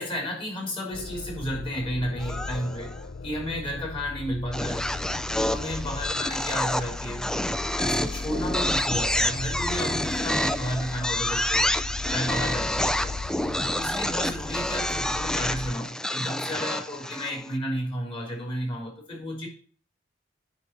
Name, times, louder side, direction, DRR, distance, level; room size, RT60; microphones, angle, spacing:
voice 1, 0.0-3.0 3.2-4.9 5.4-7.3 7.8-11.8 12.1-13.2 13.7-19.5, equal, 30° left, -1 dB, 3.3 m, -32 dB
sound 1, 0.9-15.7, left 3 dB, 65° left, 0.6 m, -37 dB
sound 2, 2.2-3.0 4.5-17.5, left 1 dB, 5° left, 0.3 m, -28 dB
9.9 x 4.3 x 6.0 m, 0.42 s
head